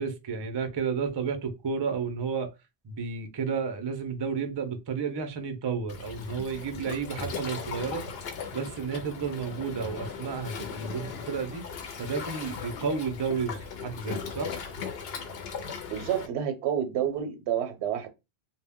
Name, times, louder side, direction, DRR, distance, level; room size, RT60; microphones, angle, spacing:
voice 1, 0.0-2.5 2.8-8.0 8.5-11.6 12.0-14.5, right 5 dB, 45° right, 0.3 m, -32 dB
Waves surf, 5.9-16.3, left 6 dB, 70° left, 0.8 m, -38 dB
voice 2, 15.9-18.1, right 9 dB, 85° right, 0.9 m, -29 dB
2.1 x 2.1 x 3.4 m
omnidirectional pair, 1.1 m